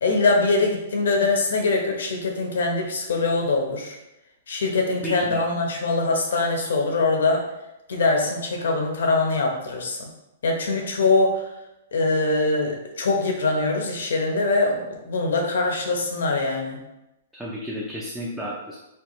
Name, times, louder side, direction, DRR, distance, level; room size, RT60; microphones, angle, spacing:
voice 1, 0.0-4.0 4.5-7.4 7.9-10.1 10.4-11.4 11.9-16.8, left 3 dB, 70° left, 2 dB, 0.8 m, -23 dB
voice 2, 5.0-5.4 17.3-18.8, equal, 5° right, -6 dB, 0.4 m, -32 dB
4.3 x 2.3 x 3.0 m, 0.92 s
hypercardioid pair, 175°, 0 cm